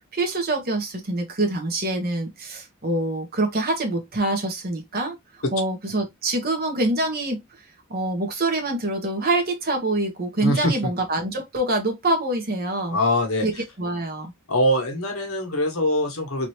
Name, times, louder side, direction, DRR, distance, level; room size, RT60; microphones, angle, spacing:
voice 1, 0.1-5.2 5.5-7.4 7.9-13.0 13.4-14.3, right 2 dB, 45° right, 1.4 m, -25 dB
voice 2, 10.4-10.9 12.9-13.5 14.5-16.5, left 1 dB, 85° left, 1.3 m, -23 dB
3.9 x 2.8 x 3.1 m
head